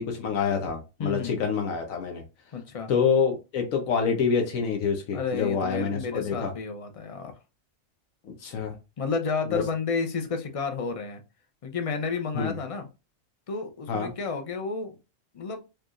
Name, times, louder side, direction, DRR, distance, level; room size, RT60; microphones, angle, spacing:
voice 1, 0.0-2.2 2.9-6.5 8.2-8.7 9.5-9.6 12.3-12.5 13.9-14.1, left 6 dB, 85° left, 3 dB, 1.2 m, -27 dB
voice 2, 1.0-1.4 2.5-2.9 5.1-7.3 9.0-11.2 11.6-12.9 13.5-14.9 15.3-15.6, left 4 dB, 40° left, 6 dB, 0.5 m, -31 dB
4.5 x 3.1 x 2.4 m, 0.28 s
omnidirectional pair, 1.4 m